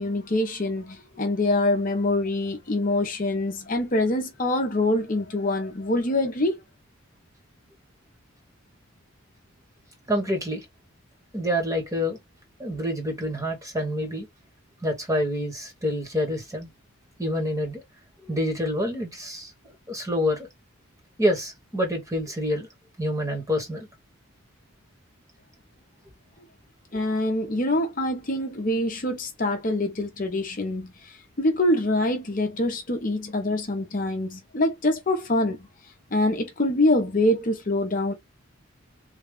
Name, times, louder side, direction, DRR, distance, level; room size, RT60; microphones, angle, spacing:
voice 1, 0.0-6.5 26.9-35.6 36.1-38.1, left 1 dB, 40° left, 0.7 m, -25 dB
voice 2, 10.1-10.6 11.3-12.2 12.6-14.3 14.8-16.7 17.2-17.8 18.2-20.5 21.2-22.7 23.0-23.9, equal, 15° right, 1.2 m, -27 dB
3.3 x 2.3 x 3.6 m
head